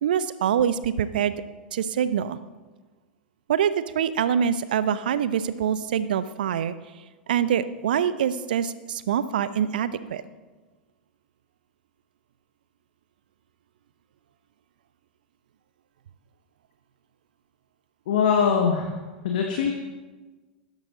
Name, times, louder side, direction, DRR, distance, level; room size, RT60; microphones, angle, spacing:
voice 1, 0.0-1.3 1.7-2.4 3.5-6.7 7.3-10.2, right 8 dB, 65° right, 15 dB, 0.6 m, -25 dB
voice 2, 18.1-18.9 19.2-19.7, left 6 dB, 65° left, 2 dB, 1.3 m, -22 dB
13.0 x 10.5 x 3.8 m, 1.3 s
figure-of-eight pair, 90°, 5 cm